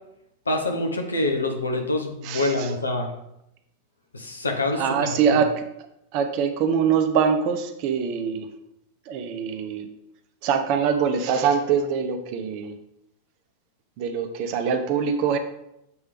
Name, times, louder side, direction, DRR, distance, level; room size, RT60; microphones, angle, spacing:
voice 1, 0.5-3.1 4.1-5.4, left 2 dB, 75° left, 2 dB, 1.0 m, -26 dB
voice 2, 2.2-2.7 4.7-5.6 6.1-8.5 9.1-9.9 10.4-12.7 14.0-15.4, right 7 dB, 45° right, 7 dB, 0.7 m, -23 dB
7.0 x 3.3 x 5.1 m, 0.81 s
figure-of-eight pair, 90°, 0 cm